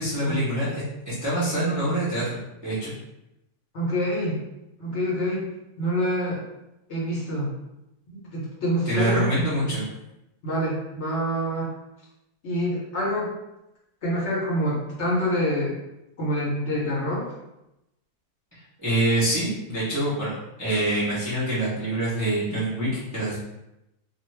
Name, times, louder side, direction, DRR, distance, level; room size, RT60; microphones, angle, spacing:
voice 1, 0.0-2.9 8.9-9.9 18.8-23.4, right 1 dB, 30° right, -10 dB, 0.3 m, -25 dB
voice 2, 3.7-4.4 4.8-5.5 5.8-6.4 6.9-7.5 8.3-9.3 9.7-9.8 10.4-11.7 12.4-13.3 14.0-15.7 16.2-17.3, equal, 55° left, -5 dB, 0.9 m, -26 dB
2.4 x 2.3 x 3.1 m, 0.90 s
omnidirectional pair, 1.7 m